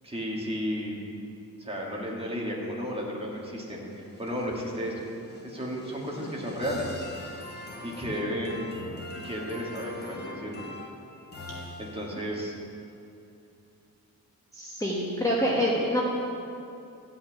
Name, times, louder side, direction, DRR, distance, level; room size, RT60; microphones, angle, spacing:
voice 1, 0.0-1.0 1.6-5.0 5.4-6.9 7.8-8.9 9.2-10.6 11.8-12.5, equal, 15° right, -3 dB, 2.0 m, -33 dB
sound 1, 3.4-12.3, left 2 dB, 30° left, 1.3 m, -43 dB
voice 2, 14.5-16.0, equal, 10° left, -6 dB, 1.3 m, -26 dB
13.5 x 5.8 x 9.0 m, 2.7 s
wide cardioid pair, 175°, 36 cm